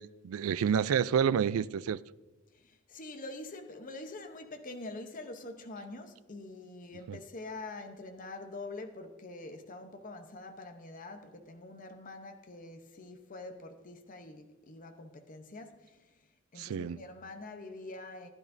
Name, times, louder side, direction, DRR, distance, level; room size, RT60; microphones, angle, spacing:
voice 1, 0.0-2.0 7.1-7.2 16.6-17.0, right 7 dB, 85° right, 0.3 m, -29 dB
voice 2, 2.5-16.1 16.5-18.3, left 2 dB, 40° left, 0.8 m, -45 dB
15.5 x 10.5 x 2.6 m
head